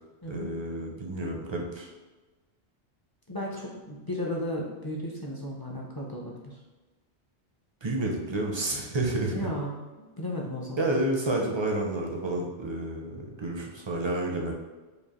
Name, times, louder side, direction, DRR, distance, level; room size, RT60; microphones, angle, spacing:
voice 1, 0.3-1.9 7.8-9.3 10.8-14.5, right 2 dB, 40° right, 0 dB, 0.4 m, -30 dB
voice 2, 3.3-6.5 9.3-9.8 10.2-10.9, left 1 dB, 30° left, -3 dB, 0.4 m, -34 dB
5.0 x 2.4 x 2.9 m, 1.2 s
omnidirectional pair, 1.1 m